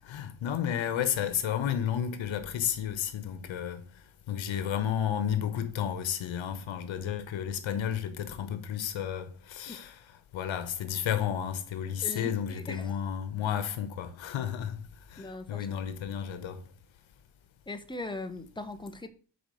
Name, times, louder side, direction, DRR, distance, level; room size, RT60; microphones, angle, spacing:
voice 1, 0.1-3.8 4.3-9.9 10.3-14.8 15.1-16.6, left 9 dB, 80° left, 1.2 m, -32 dB
voice 2, 12.0-12.9 15.2-15.7 17.7-19.1, left 2 dB, 10° left, 1.0 m, -39 dB
5.1 x 4.7 x 6.3 m
cardioid pair, 90°, 46 cm